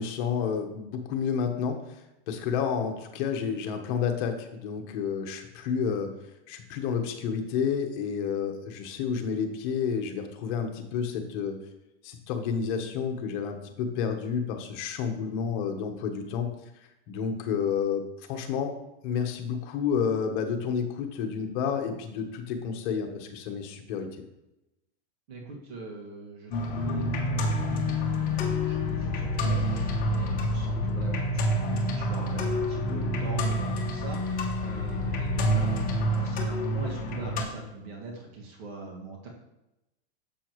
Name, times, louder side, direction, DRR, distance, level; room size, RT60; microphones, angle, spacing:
voice 1, 0.0-6.1 6.5-11.6 12.0-16.5 17.1-18.0 18.3-18.7 19.0-24.2, left 7 dB, 45° left, 5 dB, 1.2 m, -30 dB
voice 2, 25.3-39.3, right 3 dB, 65° right, -1 dB, 2.0 m, -42 dB
sound 1, 26.5-37.4, left 1 dB, 25° left, 1.3 m, -28 dB
7.2 x 6.7 x 3.1 m, 0.93 s
supercardioid pair, 145°, 33 cm